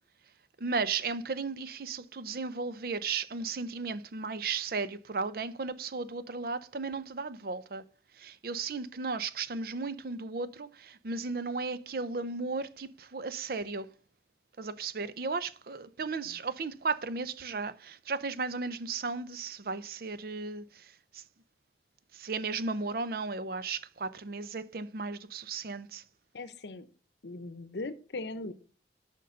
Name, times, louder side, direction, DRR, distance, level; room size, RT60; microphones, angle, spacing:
voice 1, 0.6-7.8 8.2-13.9 14.6-21.2 22.1-26.0, right 4 dB, 55° right, 0.6 m, -35 dB
voice 2, 26.3-26.9 27.2-28.5, left 2 dB, 75° left, 0.7 m, -39 dB
6.7 x 5.3 x 6.4 m
head